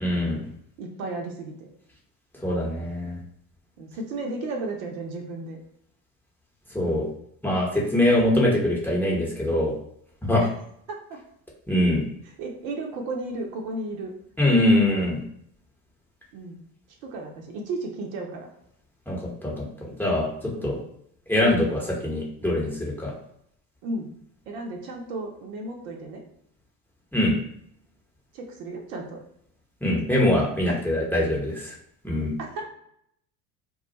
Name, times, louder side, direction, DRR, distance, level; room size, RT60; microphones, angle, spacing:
voice 1, 0.0-0.4 2.4-3.2 6.7-7.1 7.4-9.7 10.2-10.5 11.7-12.0 14.4-15.2 19.1-20.3 20.6-20.8 21.3-23.1 27.1-27.4 29.8-31.7 32.0-32.3, left 1 dB, 5° left, -3 dB, 0.9 m, -23 dB
voice 2, 0.8-1.7 3.8-5.6 10.4-10.5 10.9-11.2 12.2-14.1 16.3-16.6 17.0-18.5 20.6-20.8 23.8-24.1 24.5-26.2 28.3-29.2 30.7-30.8 32.4-32.6, right 2 dB, 60° right, 1 dB, 0.8 m, -34 dB
2.4 x 2.3 x 4.0 m, 0.70 s
hypercardioid pair, 75°, 48 cm